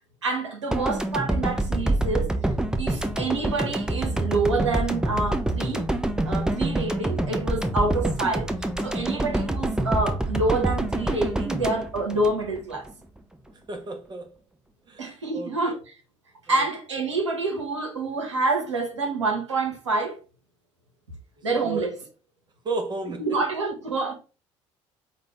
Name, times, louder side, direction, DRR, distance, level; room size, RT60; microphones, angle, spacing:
voice 1, 0.2-2.4 2.8-5.9 6.2-8.5 8.8-12.9 15.0-15.8 16.5-20.2 21.4-21.9 23.2-24.1, right 3 dB, 85° right, 0.9 m, -27 dB
sound 1, 0.7-12.9, right 1 dB, 5° right, 0.6 m, -26 dB
voice 2, 13.7-14.3 14.9-15.1 15.3-15.8 16.5-16.7 21.4-21.9 22.6-23.4, right 3 dB, 30° right, 1.0 m, -33 dB
5.1 x 2.4 x 3.4 m
figure-of-eight pair, 55°, 15 cm